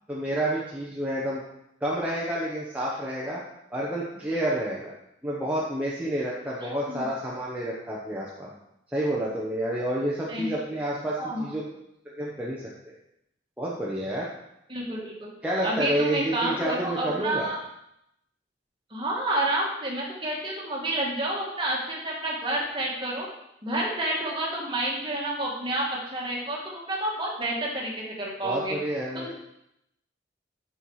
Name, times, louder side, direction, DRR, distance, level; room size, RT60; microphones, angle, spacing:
voice 1, 0.1-1.4 1.8-3.4 3.7-4.9 5.2-8.5 8.9-11.6 12.0-12.6 13.6-14.3 15.4-17.5 28.4-29.3, right 1 dB, 5° right, -6 dB, 1.0 m, -29 dB
voice 2, 6.6-7.0 10.3-10.5 11.2-11.5 14.7-15.3 15.6-17.6 18.9-23.3 23.6-28.8 29.1-29.3, right 1 dB, 25° right, -3 dB, 1.8 m, -29 dB
6.6 x 5.8 x 4.8 m, 0.80 s
head